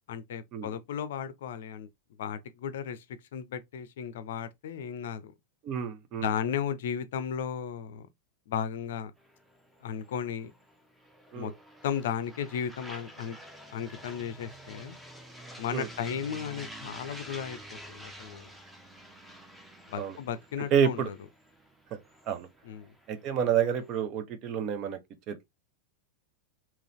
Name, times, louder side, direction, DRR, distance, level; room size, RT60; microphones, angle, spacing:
voice 1, 0.1-1.9 2.2-3.0 3.3-5.3 6.1-8.1 8.5-9.1 9.8-10.5 11.3-11.5 11.8-13.4 13.7-15.0 15.6-18.5 19.9-21.2 22.6-22.9, left 8 dB, 55° left, 0.5 m, -35 dB
voice 2, 5.6-6.3 11.3-11.5 15.7-15.9 20.0-20.2 20.7-21.1 21.9-22.0 22.3-22.5 23.1-25.0 25.3-25.4, right 8 dB, 40° right, 0.7 m, -29 dB
sound 1, 9.2-24.0, equal, 5° right, 0.8 m, -49 dB
3.8 x 2.9 x 3.1 m
figure-of-eight pair, 90°, 0 cm